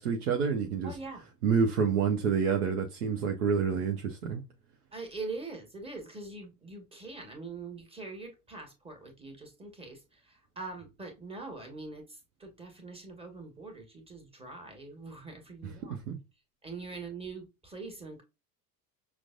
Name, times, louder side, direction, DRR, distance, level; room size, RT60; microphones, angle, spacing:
voice 1, 0.0-0.9 1.4-4.4 15.6-16.2, right 6 dB, 65° right, 0.8 m, -28 dB
voice 2, 0.8-1.3 4.9-12.0 12.4-16.0 16.6-18.2, right 3 dB, 10° right, 1.4 m, -43 dB
5.9 x 2.2 x 2.5 m
figure-of-eight pair, 75°, 49 cm